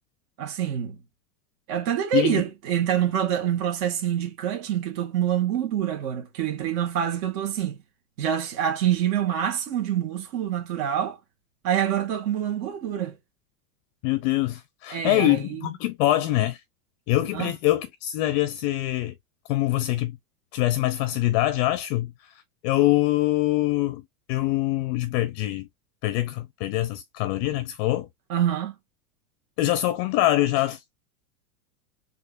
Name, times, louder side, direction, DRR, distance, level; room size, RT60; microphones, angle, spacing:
voice 1, 0.4-1.0 1.7-7.8 8.2-11.2 11.6-13.1 14.9-15.7 17.3-17.5 28.3-28.7, right 10 dB, 60° right, 1.6 m, -26 dB
voice 2, 14.0-16.6 17.1-19.1 19.5-20.2 20.5-24.0 24.3-25.7 26.0-28.1 29.6-30.8, left 16 dB, 45° left, 0.5 m, -24 dB
4.3 x 2.8 x 2.4 m
hypercardioid pair, 120°, 47 cm